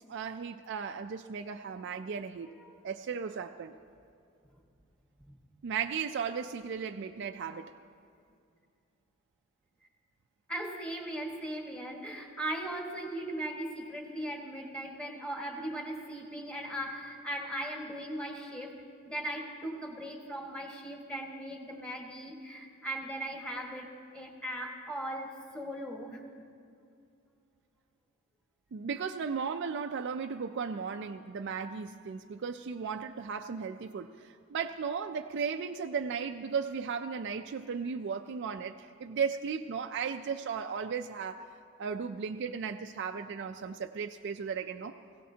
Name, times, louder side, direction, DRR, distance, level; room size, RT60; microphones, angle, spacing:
voice 1, 0.1-2.5 2.8-3.7 5.6-7.7 28.7-41.5 41.8-44.9, right 6 dB, 55° right, 6 dB, 0.4 m, -36 dB
voice 2, 10.5-18.8 19.0-26.2, right 1 dB, 5° left, 0 dB, 1.5 m, -38 dB
21.5 x 16.5 x 2.8 m, 2.4 s
head